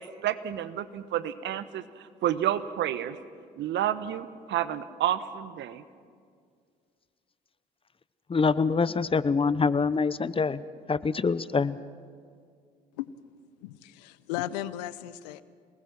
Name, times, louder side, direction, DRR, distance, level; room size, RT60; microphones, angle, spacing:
voice 1, 0.0-3.2 3.6-5.8, right 11 dB, 60° right, 1.1 m, -30 dB
voice 2, 8.3-10.6 10.9-11.8, left 4 dB, 25° left, 0.8 m, -25 dB
voice 3, 12.9-13.2 13.6-15.4, left 13 dB, 80° left, 0.7 m, -36 dB
27.5 x 19.5 x 6.0 m
hypercardioid pair, 55°, 21 cm